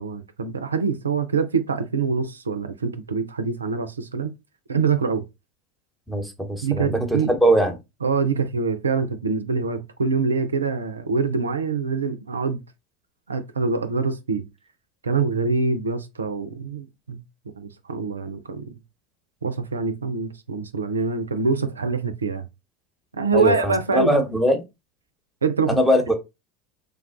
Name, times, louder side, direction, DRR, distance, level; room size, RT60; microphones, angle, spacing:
voice 1, 0.0-4.3 4.7-5.2 6.6-7.4 8.0-12.6 13.3-14.5 15.0-17.2 17.6-18.7 19.4-22.5 23.2-24.2 25.4-25.8, right 4 dB, 90° right, 0.4 m, -25 dB
voice 2, 6.1-7.7 23.3-24.6 25.7-26.1, equal, ahead, 0.9 m, -21 dB
3.3 x 2.2 x 2.5 m
hypercardioid pair, 80°, 0 cm